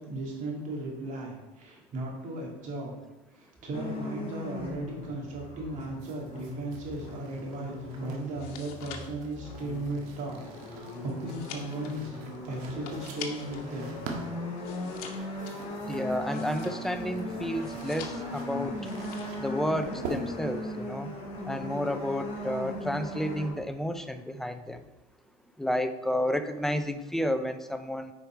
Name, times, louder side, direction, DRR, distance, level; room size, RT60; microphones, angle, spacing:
voice 1, 0.0-2.9 3.4-10.4 10.6-12.2 12.5-13.9, right 1 dB, 40° right, -1 dB, 2.5 m, -36 dB
sound 1, 3.7-23.5, left 1 dB, 30° left, 2.3 m, -38 dB
sound 2, 6.0-22.5, right 4 dB, 80° right, 1.6 m, -46 dB
sound 3, 8.2-13.7 14.0-17.1 17.5-18.4 18.8-19.5 19.7-20.1, left 7 dB, 90° left, 1.3 m, -46 dB
voice 2, 15.9-18.7 19.4-21.1 21.5-24.8 25.6-28.1, equal, ahead, 8 dB, 0.4 m, -31 dB
9.2 x 5.0 x 4.5 m, 1.0 s
cardioid pair, 145°, 19 cm